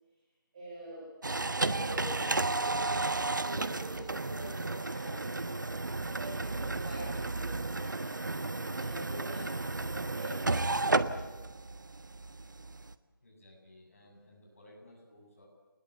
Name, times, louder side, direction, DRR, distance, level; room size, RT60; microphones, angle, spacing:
voice 1, 0.5-1.1 1.6-9.6 9.9-11.4, right 1 dB, 15° right, -6 dB, 4.8 m, -45 dB
sound 1, 1.2-12.9, right 2 dB, 60° right, 1.3 m, -33 dB
sound 2, 2.7-10.9, right 1 dB, 85° right, 7.2 m, -57 dB
voice 2, 13.2-15.5, left 1 dB, 40° left, 0 dB, 7.8 m, -57 dB
29.5 x 20.5 x 8.3 m, 1.1 s
figure-of-eight pair, 175°, 11 cm